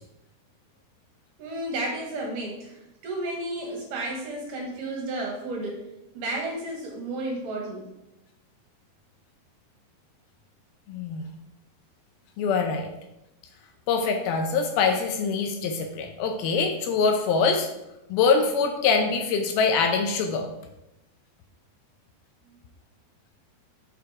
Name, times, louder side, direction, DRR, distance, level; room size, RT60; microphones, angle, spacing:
voice 1, 1.4-5.8 6.1-7.9, right 2 dB, 65° right, 0 dB, 2.3 m, -32 dB
voice 2, 10.9-11.2 12.4-12.9 13.9-17.7 18.1-20.5, left 5 dB, 80° left, 5 dB, 2.4 m, -24 dB
6.8 x 5.1 x 4.6 m, 0.90 s
omnidirectional pair, 4.6 m